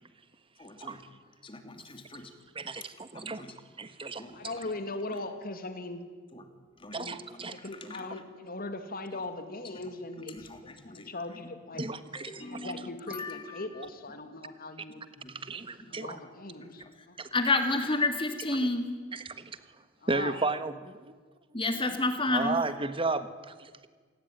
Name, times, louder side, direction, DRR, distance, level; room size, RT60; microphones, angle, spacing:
voice 1, 0.6-1.0 1.4-2.3 2.8-2.9 3.1-3.5 4.2-4.4 5.1-5.2 6.3-6.4 6.8-7.2 7.8-8.1 9.6-9.7 10.3-11.1 12.1-13.7 15.2-15.6 15.9-16.2 16.5-16.9 17.3-18.9 21.5-22.7, left 2 dB, 25° left, 7 dB, 2.8 m, -32 dB
voice 2, 2.5-3.4 3.8-4.5 6.9-7.6 11.8-12.7 15.4-16.2 17.2-17.3 19.3-19.6 20.1-20.9 22.3-23.9, right 3 dB, 25° right, 11 dB, 1.4 m, -34 dB
voice 3, 4.3-6.0 7.0-11.8 12.4-15.0 15.9-17.2 20.0-20.4, left 2 dB, 50° left, 8 dB, 2.5 m, -40 dB
27.0 x 20.0 x 9.3 m, 1.5 s
head